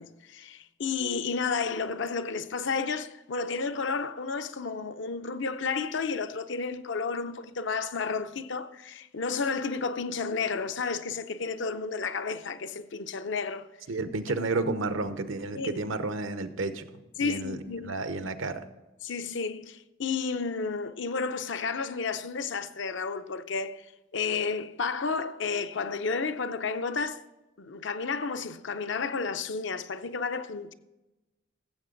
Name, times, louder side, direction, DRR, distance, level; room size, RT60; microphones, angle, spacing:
voice 1, 0.0-13.7 15.5-15.7 17.2-17.9 19.0-23.8 24.1-27.2 27.6-30.7, left 5 dB, 65° left, 0.6 m, -32 dB
voice 2, 13.9-16.8 17.2-17.6 17.8-18.6, right 3 dB, 80° right, 0.9 m, -31 dB
15.0 x 7.6 x 3.9 m
head